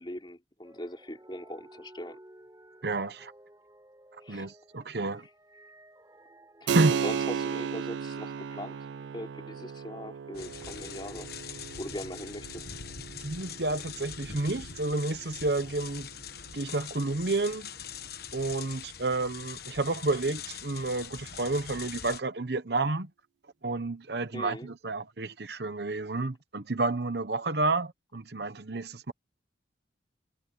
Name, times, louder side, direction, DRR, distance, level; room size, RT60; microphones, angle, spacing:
voice 1, 0.0-2.2 4.2-4.5 6.6-8.9 9.1-12.7 24.3-24.7, left 1 dB, 25° left, 3.5 m, -41 dB
sound 1, 0.6-8.0, right 1 dB, 20° right, 4.6 m, -55 dB
voice 2, 2.8-3.3 4.3-5.3 6.7-6.9 13.2-16.1 16.5-17.7 18.3-23.1 23.6-29.1, right 2 dB, 60° right, 1.0 m, -30 dB
Keyboard (musical), 6.7-16.9, right 7 dB, 80° right, 0.3 m, -35 dB
sound 2, 10.3-22.2, left 8 dB, 60° left, 1.3 m, -43 dB
head